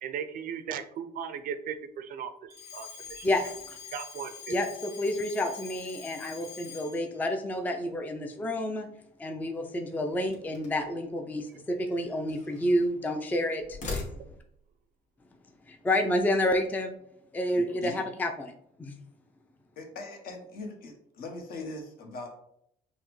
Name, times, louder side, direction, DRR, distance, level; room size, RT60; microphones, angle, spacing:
voice 1, 0.0-3.3 3.9-4.5, right 7 dB, 55° right, 10 dB, 0.4 m, -37 dB
Alarm, 2.5-7.1, left 7 dB, 80° left, 1.2 m, -45 dB
voice 2, 3.2-3.8 4.5-8.9 9.2-14.1 15.7-17.0 17.3-18.5 18.8-18.9, left 1 dB, 10° left, 4 dB, 0.4 m, -29 dB
sound 1, 10.2-11.0 11.9-12.9 13.6-14.6, left 3 dB, 45° left, 1.3 m, -40 dB
voice 3, 17.5-18.0 19.8-22.3, left 2 dB, 60° left, 3 dB, 1.0 m, -41 dB
5.5 x 2.0 x 3.0 m, 0.72 s
cardioid pair, 110°, 17 cm